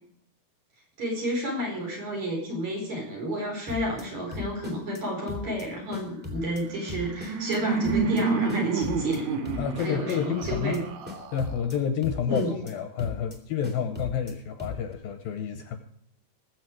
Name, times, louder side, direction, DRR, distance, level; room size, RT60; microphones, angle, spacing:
voice 1, 1.0-9.3 9.8-10.8 12.3-12.5, equal, 40° right, -1 dB, 5.6 m, -31 dB
sound 1, 3.7-4.0 4.3-5.0 5.3-5.6 5.9-6.6 6.9-7.6 7.8-8.2 8.5-9.2 9.4-10.1 10.4-10.8 11.0-11.7 12.0-12.7 13.0-13.4 13.6-14.3 14.6-14.9, left 4 dB, 5° right, 1.5 m, -38 dB
Laughter, 6.7-11.8, right 4 dB, 60° right, 2.1 m, -29 dB
voice 2, 9.6-10.8 11.3-15.8, left 7 dB, 70° left, 7 dB, 2.4 m, -29 dB
20.5 x 8.1 x 4.7 m, 0.70 s
omnidirectional pair, 4.9 m